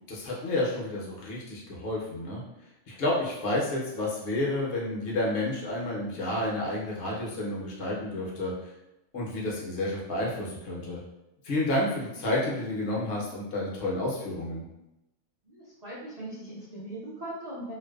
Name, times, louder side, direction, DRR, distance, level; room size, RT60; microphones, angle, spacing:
voice 1, 0.1-2.4 2.9-8.5 9.1-11.0 11.4-14.6, left 1 dB, 55° left, -4 dB, 0.8 m, -30 dB
voice 2, 15.4-17.7, right 1 dB, 40° right, -10 dB, 0.6 m, -40 dB
2.5 x 2.2 x 2.3 m, 0.93 s
omnidirectional pair, 1.4 m